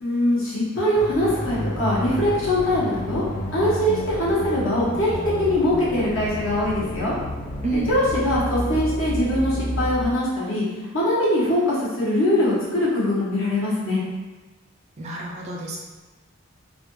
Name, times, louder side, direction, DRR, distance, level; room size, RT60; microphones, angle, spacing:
voice 1, 0.0-3.2 3.5-7.2 7.7-10.6 10.9-14.0, left 1 dB, 60° left, -7 dB, 1.0 m, -22 dB
sound 1, 0.9-10.1, left 1 dB, 35° left, 0.4 m, -30 dB
voice 2, 15.0-15.8, right 2 dB, 30° right, -2 dB, 0.3 m, -28 dB
3.3 x 2.2 x 3.0 m, 1.2 s
head